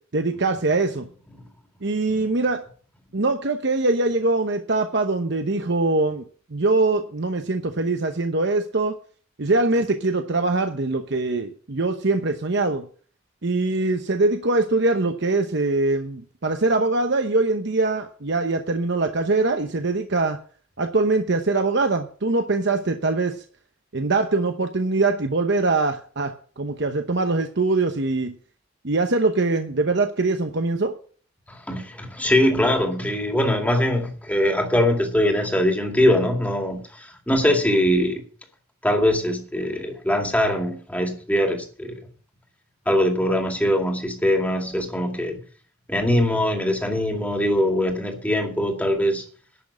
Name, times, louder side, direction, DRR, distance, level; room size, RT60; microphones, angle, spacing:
voice 1, 0.1-1.1 1.8-2.6 3.1-6.2 6.5-8.9 9.4-12.9 13.4-20.4 20.8-23.4 23.9-28.3 28.8-31.0, right 3 dB, 60° right, 0.9 m, -22 dB
voice 2, 31.5-38.2 38.8-42.0 42.9-45.4 45.9-49.3, left 1 dB, 10° left, 2.2 m, -22 dB
11.0 x 6.5 x 8.3 m
head